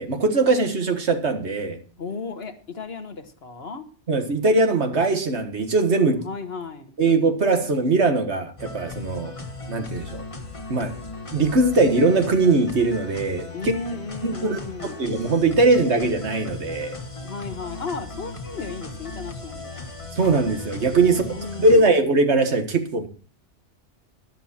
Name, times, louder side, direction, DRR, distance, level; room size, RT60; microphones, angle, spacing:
voice 1, 0.0-1.8 4.1-6.3 7.0-9.3 9.7-10.2 10.7-10.9 11.3-13.7 14.2-14.6 15.0-17.0 20.1-23.1, right 3 dB, 70° right, 1.8 m, -21 dB
voice 2, 2.0-3.8 6.2-6.9 13.5-15.0 17.2-19.9 21.0-21.9, left 4 dB, 60° left, 1.6 m, -35 dB
sound 1, 8.6-21.8, left 3 dB, 30° left, 1.4 m, -37 dB
12.5 x 11.0 x 4.3 m
omnidirectional pair, 1.2 m